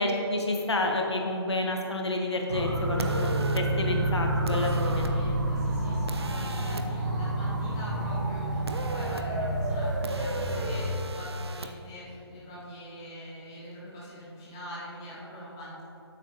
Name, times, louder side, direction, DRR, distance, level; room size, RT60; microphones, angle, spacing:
voice 1, 0.0-5.1, left 2 dB, 70° left, 1 dB, 1.6 m, -29 dB
sound 1, 2.5-10.9, right 1 dB, 40° right, 1.1 m, -29 dB
sound 2, 3.0-3.6 4.5-5.1 6.1-6.8 8.7-9.2 10.0-11.7, right 3 dB, 65° right, 0.7 m, -38 dB
voice 2, 4.5-15.8, equal, 10° left, -8 dB, 0.6 m, -43 dB
12.0 x 8.0 x 3.1 m, 2.9 s
hypercardioid pair, 175°, 14 cm